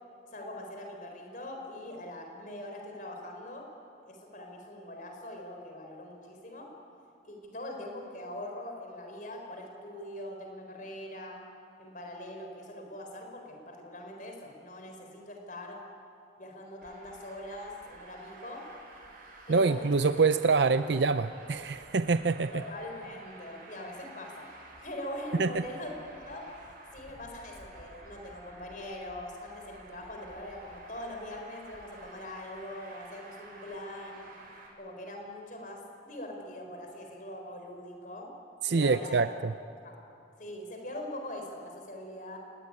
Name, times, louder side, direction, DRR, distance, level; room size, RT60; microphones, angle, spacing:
voice 1, 0.3-3.7 4.1-6.7 7.2-11.4 11.8-15.8 16.4-18.7 19.5-19.9 20.6-20.7 22.5-24.5 24.8-34.3 34.8-38.3 38.7-39.4 39.8-40.0 40.4-42.4, left 1 dB, 45° left, 2 dB, 4.2 m, -42 dB
Traffic noise roadway noise, 16.8-34.7, right 2 dB, 50° right, 6.0 m, -52 dB
voice 2, 19.5-22.5 25.4-25.6 38.6-39.5, right 4 dB, 65° right, 11 dB, 0.6 m, -25 dB
28.0 x 19.5 x 9.8 m, 2.8 s
head